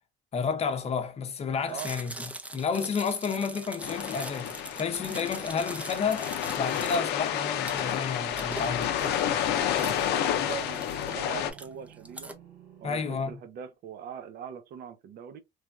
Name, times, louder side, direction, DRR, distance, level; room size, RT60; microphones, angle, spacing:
voice 1, 0.3-6.3 6.6-8.9 12.8-13.3, left 5 dB, 40° left, 0.7 m, -31 dB
Chewing mastication, 1.7-12.3, right 1 dB, 10° right, 0.5 m, -42 dB
sound 1, 3.8-11.5, left 10 dB, 80° left, 0.5 m, -30 dB
sound 2, 8.3-13.3, right 1 dB, 90° right, 1.7 m, -51 dB
voice 2, 9.6-12.3 12.8-15.4, right 8 dB, 65° right, 0.6 m, -42 dB
3.2 x 2.2 x 2.4 m
cardioid pair, 110°, 17 cm